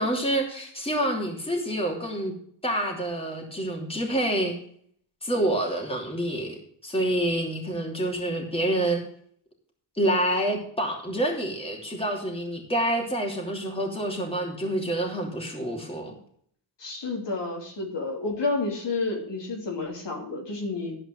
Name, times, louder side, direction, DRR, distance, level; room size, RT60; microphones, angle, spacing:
voice 1, 0.0-2.3 2.6-4.6 5.2-6.6 6.8-9.0 10.0-16.1, right 1 dB, 10° left, 0 dB, 3.0 m, -27 dB
voice 2, 16.8-21.0, left 3 dB, 60° left, 0 dB, 2.8 m, -30 dB
12.0 x 5.0 x 7.7 m, 0.62 s
cardioid pair, 75°, 47 cm